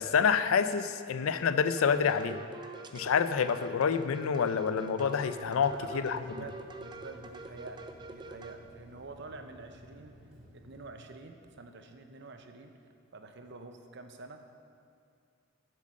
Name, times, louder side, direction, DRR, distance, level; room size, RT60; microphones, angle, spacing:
voice 1, 0.0-2.4 2.9-6.2, left 6 dB, 75° left, 12 dB, 0.4 m, -27 dB
sound 1, 1.7-8.6, right 2 dB, 20° right, 0.4 m, -45 dB
Water tap faucet / Sink (filling or washing), 5.3-10.8, left 1 dB, 5° right, 1.8 m, -56 dB
voice 2, 5.5-10.2 10.5-12.7 13.1-14.4, right 3 dB, 55° right, 6 dB, 0.7 m, -47 dB
7.6 x 7.5 x 6.3 m, 2.4 s
head